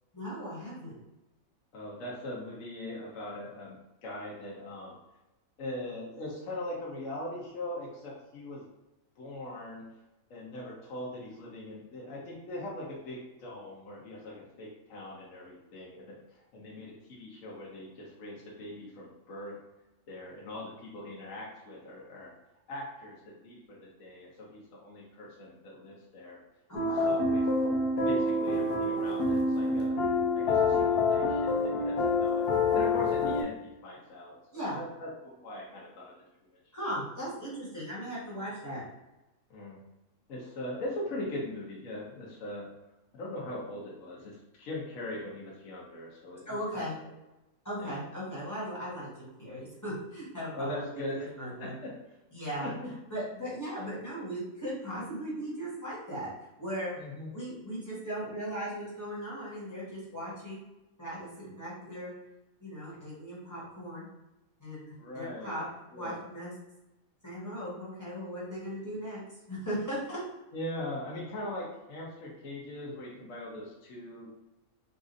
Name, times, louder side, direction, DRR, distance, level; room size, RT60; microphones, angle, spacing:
voice 1, 0.1-0.9 26.7-27.1 34.5-34.8 36.7-38.8 46.4-46.9 47.6-50.8 51.1-51.7 52.3-52.7 53.1-56.3 56.6-56.9 57.3-60.6 61.0-62.1 62.6-64.1 64.6-65.6 65.9-66.5 67.2-69.2 69.5-70.2, equal, 15° left, -8 dB, 1.2 m, -38 dB
voice 2, 1.7-4.9 5.6-8.7 9.2-9.8 10.3-19.5 20.1-22.3 22.7-26.4 26.8-27.4 28.0-30.0 30.3-36.1 39.5-39.8 40.3-42.7 43.1-47.1 47.8-48.0 50.5-51.3 51.6-51.9 52.6-52.9 57.0-57.3 65.0-65.5 65.9-66.2 70.5-74.3, left 1 dB, 65° left, -5 dB, 1.1 m, -41 dB
sound 1, 26.7-33.4, left 3 dB, 85° left, 1.1 m, -27 dB
4.1 x 2.5 x 2.5 m, 0.99 s
omnidirectional pair, 1.6 m